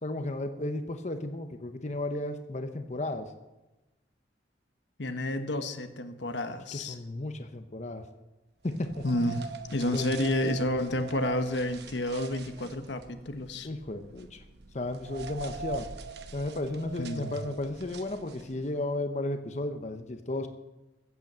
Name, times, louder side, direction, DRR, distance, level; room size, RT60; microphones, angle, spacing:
voice 1, 0.0-3.3 6.7-8.1 8.6-9.4 9.9-10.1 13.6-14.4 14.7-15.9 16.3-20.5, left 2 dB, 40° left, 7 dB, 0.8 m, -34 dB
voice 2, 5.0-7.0 9.0-13.7 17.0-17.3, left 1 dB, 85° left, 8 dB, 1.2 m, -30 dB
sound 1, 8.7-18.7, right 5 dB, 65° right, 0.9 m, -43 dB
15.0 x 8.3 x 7.4 m, 1.1 s
head